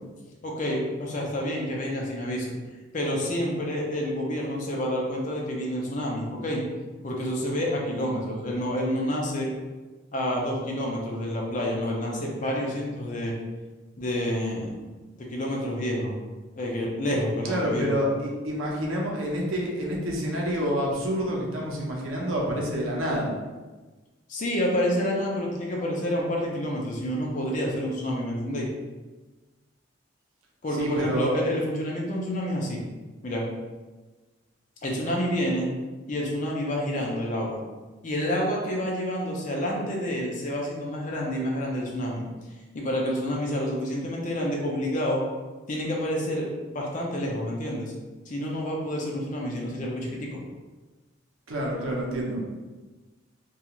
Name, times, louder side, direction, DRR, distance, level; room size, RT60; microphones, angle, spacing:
voice 1, 0.4-2.5 2.9-6.6 7.0-9.5 10.1-13.3 14.0-14.7 15.2-16.1 16.6-17.9 24.3-28.7 30.6-32.8 33.2-33.4 34.8-35.7 36.1-37.6 38.0-42.2 42.7-45.2 45.7-47.9 48.3-50.4, equal, 40° left, -2 dB, 0.5 m, -28 dB
voice 2, 17.4-23.3 30.7-31.3 51.5-52.4, equal, 85° right, -2 dB, 0.6 m, -28 dB
2.4 x 2.3 x 2.9 m, 1.2 s
head